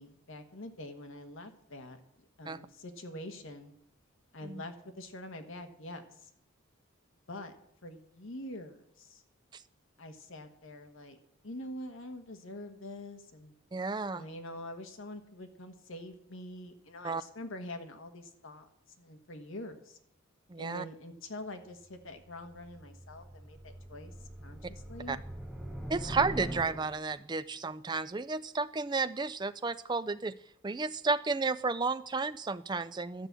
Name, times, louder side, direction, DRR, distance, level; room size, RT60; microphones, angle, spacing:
voice 1, 0.0-2.0 2.4-3.7 4.3-6.3 7.3-7.5 7.8-9.2 10.0-11.2 11.4-13.5 14.1-18.7 19.0-20.0 20.6-24.1 24.4-25.2, left 1 dB, 70° left, 6 dB, 1.3 m, -45 dB
voice 2, 13.7-14.2 17.0-17.2 20.5-20.8 25.1-25.2 25.9-30.3 30.6-33.3, right 4 dB, 20° right, 13 dB, 0.4 m, -32 dB
sound 1, 21.9-27.2, right 1 dB, 5° right, 1.0 m, -43 dB
12.0 x 6.0 x 8.1 m, 0.77 s
head